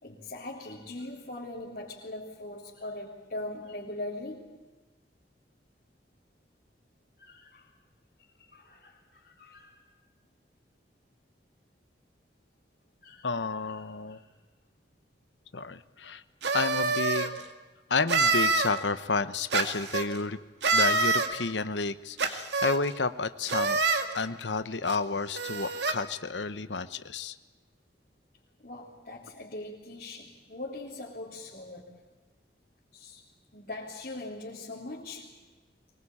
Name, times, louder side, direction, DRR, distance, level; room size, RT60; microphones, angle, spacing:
voice 1, 0.0-4.6 7.2-7.6 8.5-9.8 13.0-13.3 13.7-14.3 28.6-31.9 32.9-33.2 33.5-35.3, left 2 dB, 50° left, -5 dB, 3.7 m, -41 dB
voice 2, 13.2-14.2 15.5-16.2 16.5-17.4 17.9-20.4 20.7-23.8 24.1-27.3, left 4 dB, 85° left, 12 dB, 1.0 m, -31 dB
sound 1, 16.4-17.3 18.1-18.7 19.5-20.1 20.6-21.3 22.2-22.8 23.5-24.1 24.9-25.0 25.3-25.9, right 4 dB, 75° right, 2.3 m, -26 dB
24.0 x 21.5 x 8.7 m, 1.3 s
head